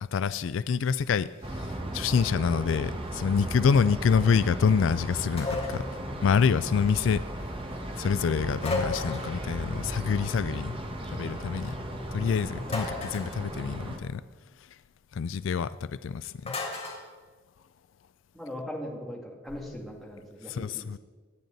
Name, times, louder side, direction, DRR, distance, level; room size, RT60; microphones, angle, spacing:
voice 1, 0.0-5.8 6.2-7.2 8.0-10.8 11.1-11.8 12.1-14.2 15.1-16.6 20.5-21.0, left 6 dB, 70° left, 15 dB, 0.4 m, -26 dB
sound 1, 1.4-14.0, right 1 dB, 25° right, 1.3 m, -36 dB
sound 2, 5.4-5.9 8.6-9.4 12.7-13.4 16.5-17.0, left 2 dB, 30° left, 3.2 m, -33 dB
voice 2, 18.3-21.0, equal, ahead, -3 dB, 2.4 m, -39 dB
26.5 x 9.2 x 4.0 m, 1.4 s
head